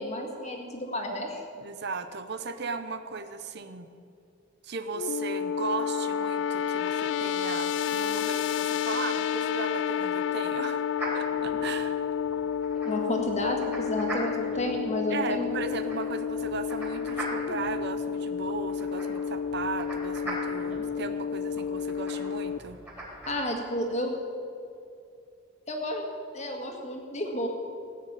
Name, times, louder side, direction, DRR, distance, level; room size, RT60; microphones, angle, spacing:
voice 1, 0.0-1.4 12.9-15.5 23.3-24.2 25.7-27.5, left 1 dB, 35° left, 2 dB, 1.9 m, -31 dB
voice 2, 1.6-3.9 4.6-10.9 11.1-12.0 15.1-22.8, right 4 dB, 55° right, 10 dB, 0.7 m, -36 dB
sound 1, 4.9-22.6, left 8 dB, 60° left, 0.3 m, -30 dB
sound 2, 10.9-23.3, right 1 dB, 10° right, 3.5 m, -41 dB
17.0 x 6.5 x 8.9 m, 2.6 s
head